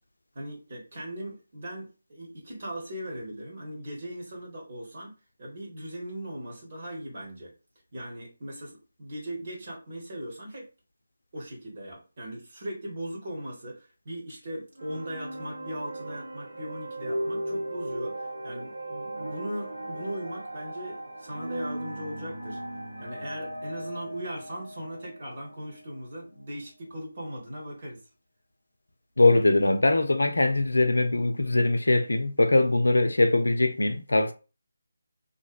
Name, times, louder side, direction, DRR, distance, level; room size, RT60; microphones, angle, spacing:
voice 1, 0.3-5.1 5.4-7.5 7.9-10.7 11.3-22.6 23.0-28.0, right 1 dB, 40° right, 1.2 m, -39 dB
sound 1, 14.8-26.0, right 1 dB, 75° right, 0.6 m, -37 dB
voice 2, 29.2-34.3, left 2 dB, 70° left, 0.4 m, -22 dB
2.5 x 2.1 x 2.4 m
figure-of-eight pair, 155°, 0 cm